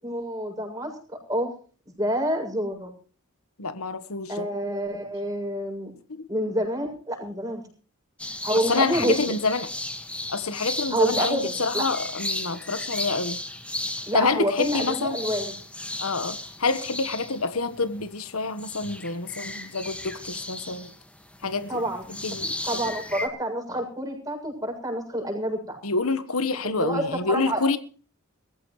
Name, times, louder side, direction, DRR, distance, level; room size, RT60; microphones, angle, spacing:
voice 1, 0.0-0.9 1.3-1.5 2.0-2.9 4.3-5.9 6.3-7.6 8.4-9.2 10.9-11.9 14.1-15.5 21.7-22.1 22.7-25.8 26.8-27.6, equal, 15° right, 7.3 m, -28 dB
voice 2, 3.6-4.5 6.1-6.3 8.7-9.7 10.3-13.4 14.1-15.2 16.0-20.9 21.4-21.8 22.2-22.9 25.8-27.8, left 3 dB, 75° left, 1.4 m, -27 dB
sound 1, 8.2-18.3 18.6-23.3, left 1 dB, 5° left, 1.7 m, -34 dB
22.5 x 14.5 x 3.2 m
head